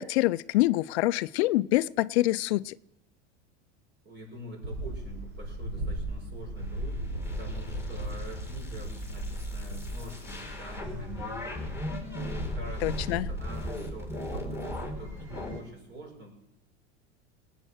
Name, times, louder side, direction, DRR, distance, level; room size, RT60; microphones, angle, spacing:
voice 1, 0.0-2.8 12.8-13.3, left 17 dB, 70° left, 17 dB, 0.5 m, -26 dB
voice 2, 4.0-7.0 7.4-11.6 12.0-16.4, right 1 dB, 30° right, 2 dB, 6.5 m, -46 dB
sound 1, 4.6-15.6, right 1 dB, 65° right, 6.4 m, -37 dB
sound 2, 6.6-15.6, left 2 dB, 10° right, 4.4 m, -39 dB
19.5 x 9.0 x 6.3 m, 0.89 s
hypercardioid pair, 100°, 34 cm